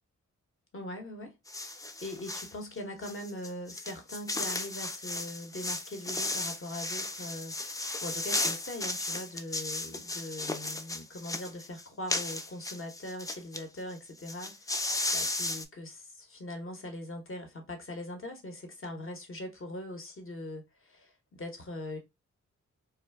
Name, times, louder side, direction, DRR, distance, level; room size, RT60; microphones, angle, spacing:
voice 1, 0.7-1.3 1.6-22.0, left 1 dB, 45° left, 1.0 m, -41 dB
sound 1, 1.5-2.5 3.0-13.6 13.9-14.0 14.2-15.6, left 2 dB, 10° left, 0.3 m, -35 dB
2.4 x 2.2 x 3.3 m
cardioid pair, 70°, 30 cm